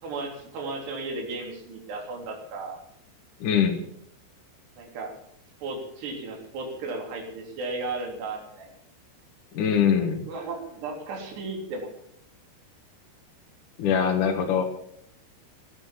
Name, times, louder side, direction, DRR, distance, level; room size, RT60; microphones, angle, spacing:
voice 1, 0.0-2.8 4.8-5.1 5.6-8.7 10.2-11.9, right 3 dB, 75° right, 1 dB, 5.7 m, -35 dB
voice 2, 3.4-3.8 9.5-10.2 13.8-14.6, left 7 dB, 60° left, 2 dB, 2.7 m, -23 dB
17.0 x 11.5 x 7.5 m, 0.69 s
omnidirectional pair, 4.9 m